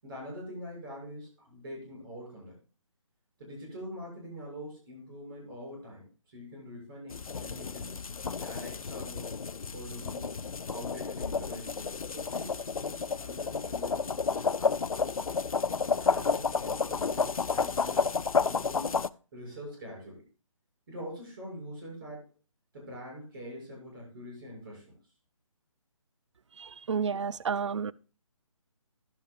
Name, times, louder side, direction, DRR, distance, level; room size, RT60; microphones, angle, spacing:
voice 1, 0.0-2.6 3.4-8.1 8.4-9.4 9.7-10.3 10.7-15.2 15.8-18.0 18.4-19.0 19.3-20.2 20.9-22.3 22.7-25.0, equal, 40° right, 6.6 m, -44 dB
sound 1, 7.1-19.1, left 5 dB, 90° left, 0.4 m, -31 dB
voice 2, 26.6-27.9, right 6 dB, 60° right, 0.4 m, -31 dB
12.0 x 11.0 x 2.4 m
figure-of-eight pair, 145°, 17 cm